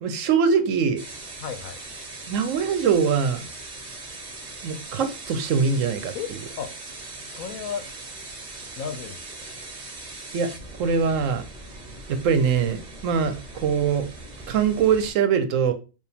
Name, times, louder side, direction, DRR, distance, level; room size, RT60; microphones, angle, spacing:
voice 1, 0.0-1.0 2.3-3.4 4.6-6.1 10.3-10.5 10.8-11.4 12.1-13.3 13.6-14.0 14.5-15.7, right 6 dB, 70° right, 9 dB, 1.0 m, -22 dB
sound 1, 1.0-15.1, right 2 dB, 35° right, 0.9 m, -40 dB
voice 2, 1.4-1.8 6.1-6.7 7.3-8.1 8.8-9.2, left 7 dB, 85° left, 9 dB, 1.1 m, -34 dB
4.7 x 2.6 x 3.4 m, 0.32 s
omnidirectional pair, 1.4 m